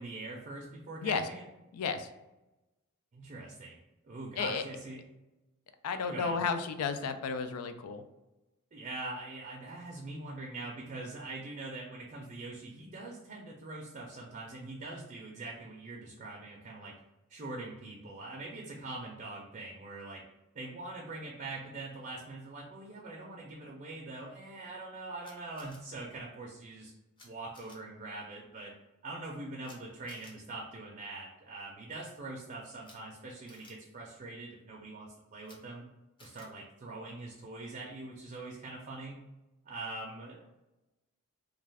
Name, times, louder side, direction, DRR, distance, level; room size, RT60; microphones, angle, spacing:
voice 1, 0.0-1.5 3.1-5.0 6.0-6.4 8.7-16.9 17.3-20.2 20.5-26.9 27.2-28.7 29.0-35.8 36.2-39.2 39.7-40.4, right 2 dB, 35° right, -1 dB, 0.4 m, -43 dB
voice 2, 1.7-2.1 4.4-4.6 5.8-8.0, left 5 dB, 85° left, 9 dB, 0.3 m, -33 dB
Camera, 25.2-25.8 27.2-27.3 27.5-27.8 29.6-29.8 30.1-30.3 32.8-32.9 33.5-33.7 35.4-35.6 36.2-36.5, left 2 dB, 20° left, 0.5 m, -55 dB
2.4 x 2.3 x 3.3 m, 1.0 s
head